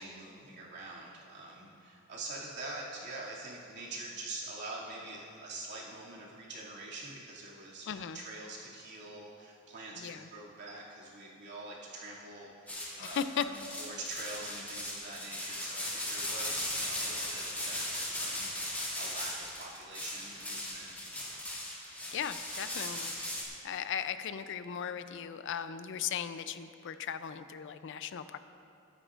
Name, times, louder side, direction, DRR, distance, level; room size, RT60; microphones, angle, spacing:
voice 1, 0.0-20.9, right 2 dB, 55° right, -5 dB, 2.4 m, -45 dB
voice 2, 7.9-8.2 10.0-10.3 13.0-13.5 22.1-23.1 23.6-28.4, left 8 dB, 60° left, 12 dB, 0.4 m, -37 dB
sound 1, 12.7-23.4, left 1 dB, 10° left, 2.2 m, -38 dB
22.0 x 10.0 x 2.5 m, 2.6 s
head